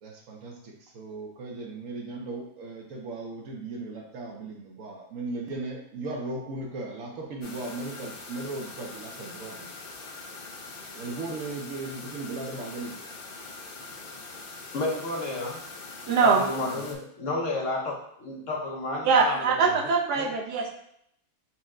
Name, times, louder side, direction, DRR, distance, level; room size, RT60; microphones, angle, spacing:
voice 1, 0.0-9.7 10.9-13.0 16.6-16.9, right 2 dB, 65° right, 1 dB, 0.9 m, -37 dB
sound 1, 7.4-16.9, left 3 dB, 80° left, 0.4 m, -43 dB
voice 2, 14.7-15.6 16.2-19.7 20.1-20.3, left 2 dB, 65° left, -3 dB, 0.8 m, -31 dB
voice 3, 16.1-16.4 19.0-20.7, right 5 dB, 85° right, 0 dB, 1.2 m, -22 dB
4.3 x 2.1 x 3.6 m, 0.72 s
omnidirectional pair, 1.7 m